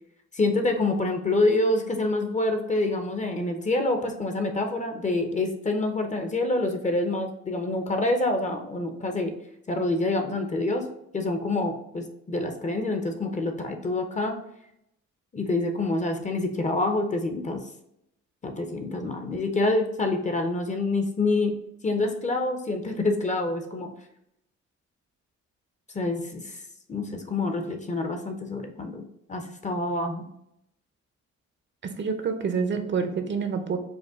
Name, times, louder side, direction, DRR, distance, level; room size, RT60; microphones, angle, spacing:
voice 1, 0.3-9.3 9.7-10.8 11.1-14.4 15.3-17.6 18.4-21.5 21.8-23.9 25.9-26.6 26.9-29.0 29.3-30.3, left 2 dB, 25° left, 5 dB, 0.6 m, -27 dB
voice 2, 31.8-33.8, right 5 dB, 40° right, 6 dB, 0.6 m, -27 dB
5.1 x 2.2 x 3.5 m, 0.78 s
cardioid pair, 90°, 30 cm